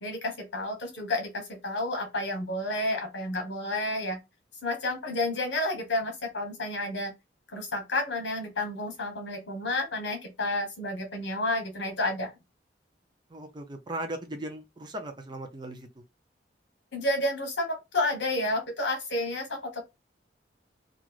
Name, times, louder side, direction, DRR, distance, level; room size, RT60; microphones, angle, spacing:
voice 1, 0.0-4.2 4.6-7.1 7.5-12.3 16.9-19.8, left 1 dB, 75° left, 1.2 m, -30 dB
voice 2, 13.3-15.9, right 1 dB, 25° right, 0.5 m, -38 dB
3.0 x 2.4 x 2.4 m
head